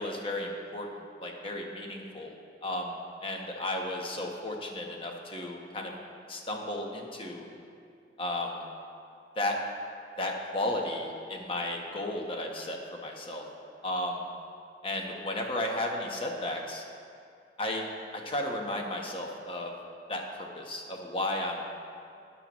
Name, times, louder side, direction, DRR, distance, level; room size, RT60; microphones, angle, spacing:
voice 1, 0.0-2.3 2.6-5.9 6.3-7.4 8.2-8.6 9.4-9.6 10.2-13.4 13.8-14.3 14.8-16.8 17.6-17.8 18.1-19.7 20.1-21.6, left 1 dB, 30° left, 1 dB, 1.0 m, -34 dB
12.0 x 9.8 x 3.0 m, 2.4 s
head